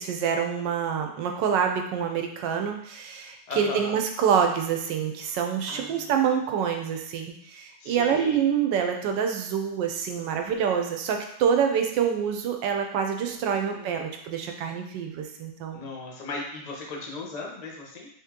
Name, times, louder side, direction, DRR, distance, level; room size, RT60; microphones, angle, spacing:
voice 1, 0.0-15.8, right 7 dB, 85° right, 4 dB, 1.3 m, -26 dB
voice 2, 3.5-4.0 5.7-6.1 7.8-8.4 13.2-14.0 15.7-18.1, left 3 dB, 50° left, -1 dB, 0.5 m, -37 dB
3.8 x 2.9 x 3.6 m, 0.73 s
omnidirectional pair, 1.9 m